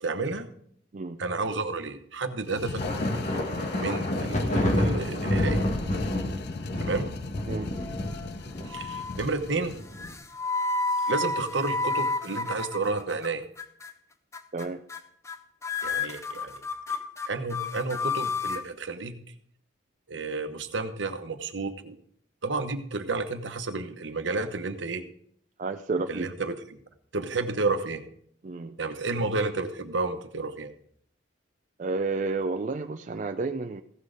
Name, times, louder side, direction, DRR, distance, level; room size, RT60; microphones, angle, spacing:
voice 1, 0.0-0.5 1.2-2.8 3.7-5.7 6.8-7.1 8.6-9.8 11.1-13.5 15.8-16.6 17.3-19.2 20.1-22.0 22.4-25.0 26.1-26.8 27.1-28.0 28.8-30.7, right 3 dB, 75° right, 8 dB, 1.0 m, -31 dB
sound 1, 2.5-9.8, left 3 dB, 60° left, 0.5 m, -37 dB
sound 2, 2.8-10.1, left 1 dB, 40° left, 1.5 m, -29 dB
sound 3, 7.7-8.3 8.7-9.2 10.0-13.3 13.6-13.9 14.3-14.6 14.9-15.0 15.2-15.4 15.6-18.6, left 3 dB, 15° left, 0.6 m, -31 dB
voice 2, 25.6-26.3 28.4-28.8 31.8-33.8, right 3 dB, 40° right, 6 dB, 0.4 m, -31 dB
15.5 x 6.3 x 5.0 m, 0.64 s
head